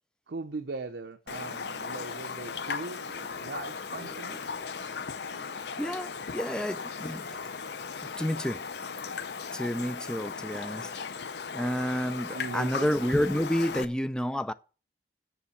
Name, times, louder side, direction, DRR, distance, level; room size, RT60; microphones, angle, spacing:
voice 1, 0.3-3.0 3.4-4.4 12.3-12.9, right 3 dB, 70° right, 0.6 m, -39 dB
Raindrop, 1.3-13.8, left 5 dB, 70° left, 0.7 m, -37 dB
sound 1, 1.8-7.9, left 1 dB, 25° right, 3.5 m, -53 dB
voice 2, 5.8-7.3 8.2-8.6 9.5-10.9 11.5-14.5, equal, 5° left, 0.4 m, -30 dB
7.1 x 7.0 x 7.1 m
head